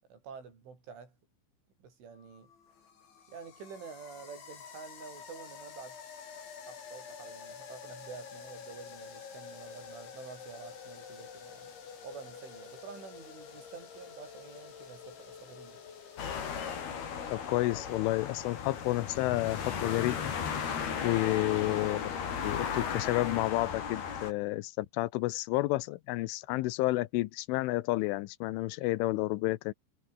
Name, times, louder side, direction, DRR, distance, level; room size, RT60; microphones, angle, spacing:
voice 1, 0.1-1.2 1.8-2.5 3.3-6.0 6.7-11.7 12.0-15.8, right 5 dB, 80° right, 8.8 m, -48 dB
sound 1, 2.2-16.8, left 6 dB, 70° left, 7.3 m, -48 dB
sound 2, 16.2-24.3, left 7 dB, 55° left, 5.5 m, -35 dB
voice 2, 17.3-20.6 21.0-22.2 22.4-29.7, left 19 dB, 90° left, 3.4 m, -31 dB
omnidirectional pair, 5.4 m